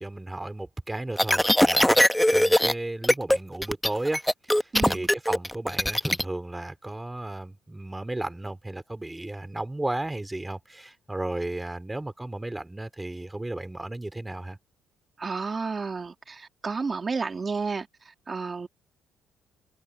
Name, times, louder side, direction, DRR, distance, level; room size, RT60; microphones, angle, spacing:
voice 1, 0.0-2.0 2.3-4.3 4.5-14.6, right 2 dB, 10° right, 4.1 m, -34 dB
sound 1, 1.2-2.7 3.0-3.4 3.6-6.2, equal, 5° left, 0.9 m, -21 dB
voice 2, 4.7-5.1 15.2-17.9 18.3-18.7, right 4 dB, 30° right, 2.4 m, -31 dB
cardioid pair, 85°, 0 cm